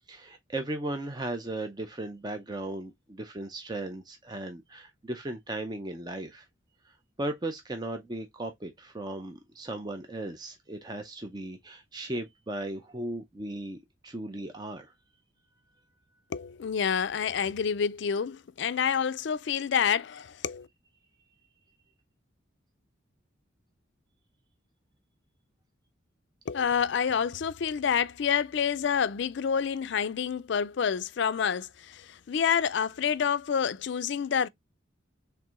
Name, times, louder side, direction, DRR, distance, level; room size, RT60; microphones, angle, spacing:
voice 1, 0.1-6.5 6.8-13.8 14.0-14.9, right 1 dB, 20° right, 0.5 m, -36 dB
voice 2, 16.3-20.7 26.5-34.5, left 7 dB, 60° left, 0.4 m, -28 dB
4.6 x 3.5 x 2.4 m
head